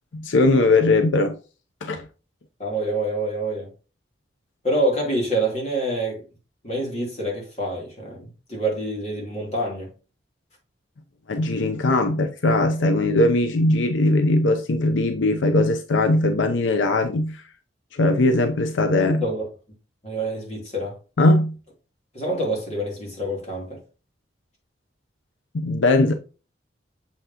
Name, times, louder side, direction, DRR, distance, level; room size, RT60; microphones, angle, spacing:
voice 1, 0.1-1.4 1.8-2.1 11.3-17.4 17.9-19.3 21.2-21.6 25.5-26.1, left 2 dB, 90° left, 0.7 m, -20 dB
voice 2, 2.6-3.7 4.6-6.2 6.6-9.9 19.0-19.5 20.0-21.0 22.1-23.8, right 1 dB, 35° left, 3.1 m, -26 dB
6.8 x 5.7 x 2.9 m
head